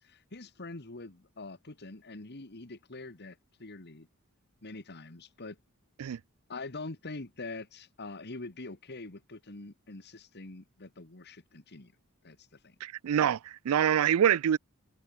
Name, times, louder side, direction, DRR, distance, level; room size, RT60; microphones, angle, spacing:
voice 1, 0.0-4.1 4.6-5.6 6.5-11.9 12.2-12.8, left 3 dB, 50° left, 1.8 m, -44 dB
voice 2, 12.8-14.6, right 9 dB, 80° right, 0.4 m, -25 dB
head